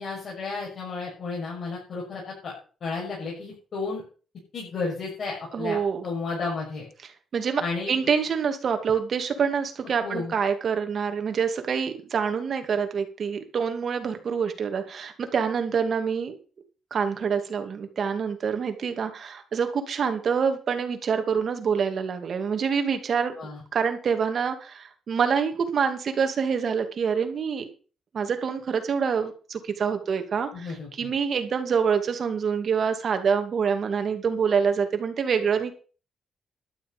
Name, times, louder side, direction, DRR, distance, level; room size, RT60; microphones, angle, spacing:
voice 1, 0.0-2.5 2.8-4.0 4.5-6.8 7.6-8.0 10.0-10.3 23.4-23.6 30.5-31.1, left 4 dB, 60° left, -3 dB, 6.3 m, -33 dB
voice 2, 5.5-6.0 7.3-7.6 7.9-16.3 16.9-23.3 23.7-27.7 28.1-35.8, right 6 dB, 55° right, 6 dB, 2.6 m, -26 dB
12.0 x 7.5 x 6.9 m, 0.38 s
cardioid pair, 90°, 0 cm